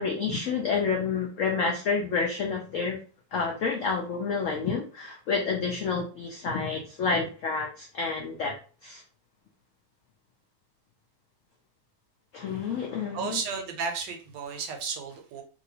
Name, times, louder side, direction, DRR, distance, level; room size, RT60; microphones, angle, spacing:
voice 1, 0.0-3.0 3.3-8.5 8.8-9.0 12.3-13.4, left 5 dB, 80° left, 0 dB, 0.7 m, -29 dB
voice 2, 12.5-12.8 13.1-15.4, right 5 dB, 80° right, 5 dB, 1.2 m, -34 dB
2.9 x 2.6 x 2.8 m, 0.38 s
omnidirectional pair, 2.0 m